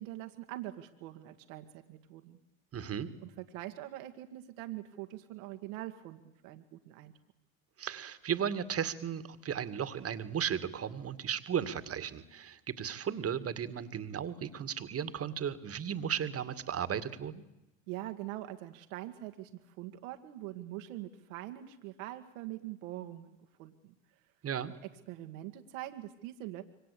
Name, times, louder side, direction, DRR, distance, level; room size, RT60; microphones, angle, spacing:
voice 1, 0.0-2.4 3.2-7.1 17.9-23.9 24.8-26.6, right 15 dB, 70° right, 7 dB, 2.1 m, -43 dB
voice 2, 2.7-3.1 7.8-17.4 24.4-24.7, right 8 dB, 35° right, 12 dB, 2.2 m, -35 dB
27.0 x 24.5 x 8.5 m, 0.92 s
hypercardioid pair, 80°, 41 cm